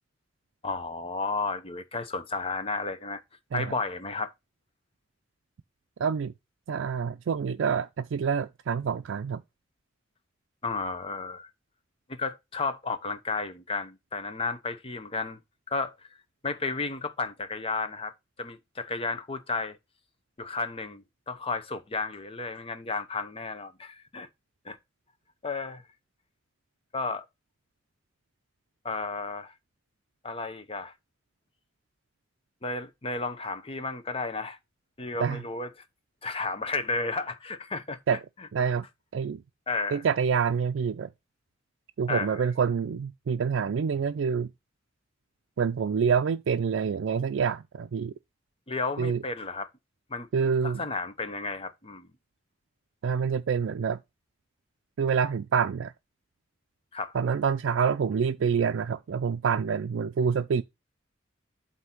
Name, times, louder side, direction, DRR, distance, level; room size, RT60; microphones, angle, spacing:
voice 1, 0.6-3.2 3.5-4.3 10.6-11.5 12.1-15.4 15.7-15.9 16.4-18.1 18.4-19.8 20.4-24.3 24.6-24.8 25.4-25.8 26.9-27.2 28.8-29.5 30.2-30.9 32.6-34.6 35.0-35.7 36.2-38.0 39.7-40.0 42.1-42.4 48.7-49.7 50.1-50.3 50.6-52.1 56.9-57.1, left 4 dB, 30° left, 0.8 m, -33 dB
voice 2, 6.0-6.3 6.7-9.4 35.2-35.4 38.1-38.2 38.5-38.8 39.1-39.4 39.9-41.1 42.0-44.5 45.6-48.1 49.0-49.2 50.3-50.8 53.0-54.0 55.0-55.9 57.1-60.6, right 6 dB, 80° right, 0.4 m, -27 dB
8.0 x 2.8 x 5.7 m
head